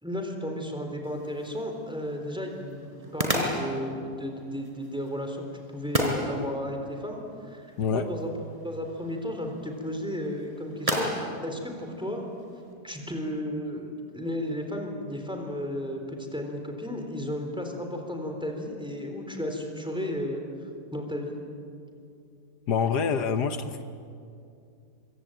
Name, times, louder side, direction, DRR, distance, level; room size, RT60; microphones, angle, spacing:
voice 1, 0.0-8.3 8.6-11.1 11.4-12.2 12.8-20.4 20.9-21.4, left 1 dB, 5° right, 3 dB, 3.7 m, -34 dB
sound 1, 1.0-12.7, equal, 20° right, 4.4 m, -35 dB
voice 2, 22.7-23.8, left 6 dB, 75° left, 9 dB, 1.6 m, -26 dB
25.0 x 24.5 x 9.1 m, 2.5 s
omnidirectional pair, 1.8 m